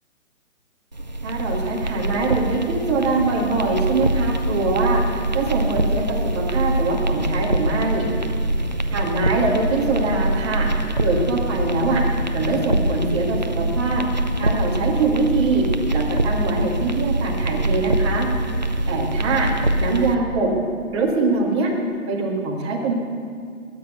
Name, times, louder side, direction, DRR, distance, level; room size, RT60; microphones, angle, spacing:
sound 1, 0.9-20.1, right 1 dB, 35° right, 0.4 m, -24 dB
voice 1, 1.2-8.1 8.9-10.7 11.0-12.0 12.3-15.6 15.9-18.3 18.9-19.5 19.8-20.5 20.9-21.7 22.1-22.9, right 3 dB, 20° right, -3 dB, 1.9 m, -23 dB
21.0 x 8.7 x 6.8 m, 2.2 s
hypercardioid pair, 170°, 40 cm